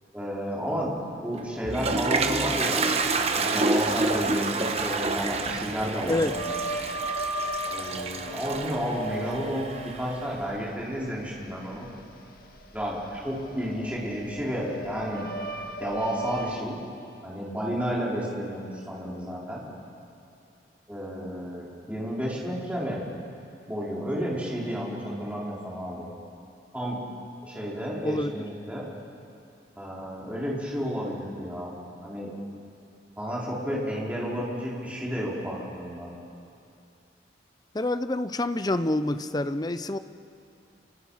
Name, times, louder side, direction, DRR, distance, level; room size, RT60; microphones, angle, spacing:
voice 1, 0.1-0.9 1.2-2.9 3.4-6.5 7.7-9.7 9.9-11.9 12.7-15.3 15.8-16.8 17.2-19.6 20.9-23.1 23.7-26.1 26.7-27.0 27.4-28.9 29.8-31.7 32.0-32.3 33.2-36.1, equal, 10° right, -5 dB, 4.6 m, -31 dB
Toilet flush, 1.4-10.2, right 3 dB, 35° right, 1.2 m, -29 dB
sound 1, 6.3-16.6, right 1 dB, 55° left, 1.6 m, -37 dB
voice 2, 28.0-28.5 37.7-40.0, left 1 dB, 20° left, 11 dB, 0.6 m, -27 dB
28.5 x 25.5 x 5.8 m, 2.6 s
head